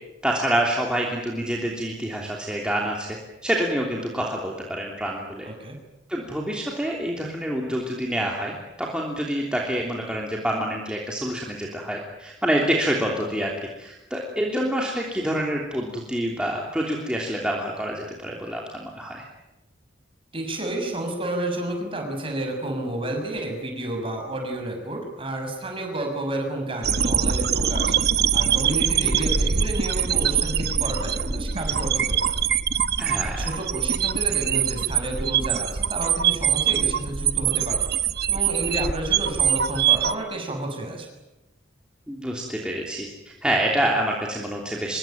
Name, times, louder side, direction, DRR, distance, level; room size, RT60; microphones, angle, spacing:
voice 1, 0.2-3.2 3.4-5.5 6.1-13.5 13.8-19.2 33.0-33.5 42.1-45.0, right 1 dB, 5° right, -2 dB, 3.1 m, -27 dB
voice 2, 5.4-5.8 20.3-28.0 28.3-32.4 33.2-37.8 38.3-41.1, right 1 dB, 25° right, 3 dB, 6.7 m, -31 dB
sound 1, 26.8-40.1, right 8 dB, 55° right, 1.0 m, -23 dB
25.5 x 23.0 x 9.1 m, 0.96 s
head